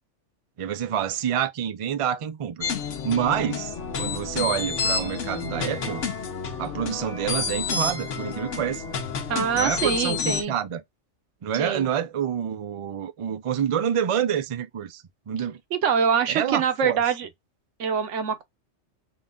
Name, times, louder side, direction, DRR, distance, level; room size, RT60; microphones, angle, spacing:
voice 1, 0.6-2.7 3.0-6.1 6.6-8.8 9.5-10.8 11.4-15.6 16.3-17.0, right 9 dB, 60° right, 0.3 m, -27 dB
sound 1, 2.6-10.4, left 5 dB, 90° left, 1.3 m, -29 dB
voice 2, 9.3-10.6 11.5-11.9 15.7-17.3 17.8-18.4, right 7 dB, 85° right, 1.1 m, -24 dB
3.9 x 2.3 x 3.6 m
omnidirectional pair, 1.2 m